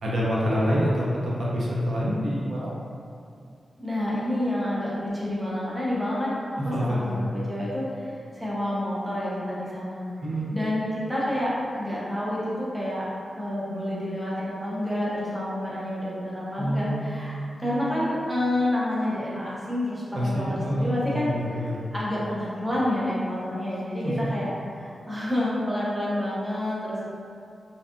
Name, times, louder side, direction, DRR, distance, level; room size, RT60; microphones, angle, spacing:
voice 1, 0.0-2.7 6.7-7.2 10.2-10.5 16.6-17.5 20.2-21.8 24.0-24.3, equal, 65° right, -6 dB, 0.5 m, -27 dB
voice 2, 3.8-10.0 10.5-13.1 13.4-27.1, left 1 dB, 5° right, -8 dB, 0.5 m, -29 dB
2.6 x 2.2 x 2.4 m, 2.3 s
wide cardioid pair, 145°, 0 cm